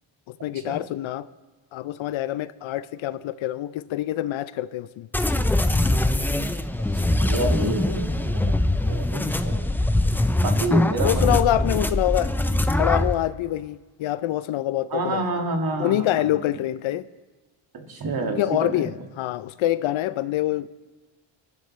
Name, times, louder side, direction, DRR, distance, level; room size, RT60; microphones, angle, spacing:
voice 1, 0.3-1.3 1.7-5.1 10.7-12.3 12.7-15.3 15.8-17.1 18.2-20.7, left 13 dB, 70° left, 16 dB, 0.6 m, -26 dB
sound 1, 5.1-13.1, left 1 dB, 5° left, 0.4 m, -22 dB
sound 2, 6.7-8.7, left 2 dB, 70° right, 5.7 m, -45 dB
voice 2, 7.2-9.7 10.4-11.4 14.9-16.3 17.7-18.9, right 2 dB, 45° right, 3 dB, 2.1 m, -29 dB
27.0 x 11.5 x 3.2 m, 1.2 s
cardioid pair, 95°, 49 cm